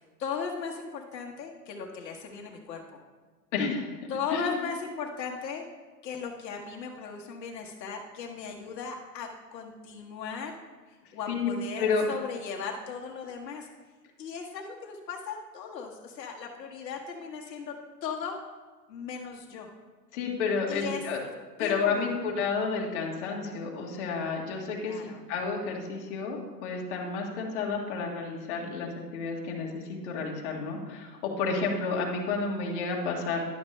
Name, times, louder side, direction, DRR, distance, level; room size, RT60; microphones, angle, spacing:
voice 1, 0.0-3.0 4.1-5.7 6.0-10.6 11.1-13.7 14.2-17.8 18.0-18.4 18.9-19.7 20.7-21.1 21.6-22.1 24.8-25.2, left 6 dB, 80° left, 0 dB, 1.3 m, -37 dB
voice 2, 3.5-3.8 4.3-4.6 11.3-11.5 11.8-12.0 20.1-21.2 21.6-25.0 25.3-33.4, left 4 dB, 40° left, -1 dB, 1.5 m, -30 dB
10.5 x 6.3 x 3.2 m, 1.4 s
hypercardioid pair, 160°, 50 cm